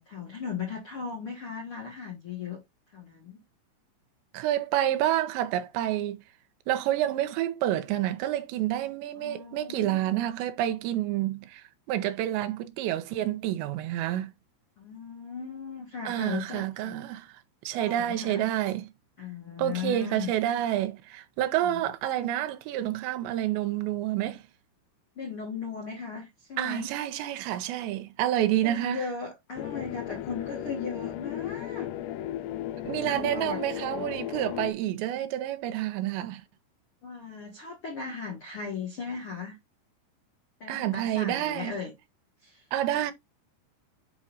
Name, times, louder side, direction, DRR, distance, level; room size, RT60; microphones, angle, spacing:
voice 1, 0.0-2.6 2.9-3.4 9.1-10.2 14.8-17.0 17.7-18.5 19.2-20.3 21.6-21.8 25.1-26.9 28.6-31.9 33.0-34.0 37.0-39.6 40.6-41.9 42.4-42.6 42.9-43.1, left 5 dB, 65° left, 1.3 m, -37 dB
voice 2, 4.3-6.2 6.7-14.3 16.1-17.3 17.6-18.9 19.6-24.4 26.6-29.0 32.8-36.4 40.7-41.7 42.7-43.1, right 12 dB, 85° right, 2.9 m, -29 dB
sound 1, 29.6-34.7, left 12 dB, 85° left, 2.6 m, -35 dB
8.7 x 5.5 x 2.5 m
omnidirectional pair, 5.1 m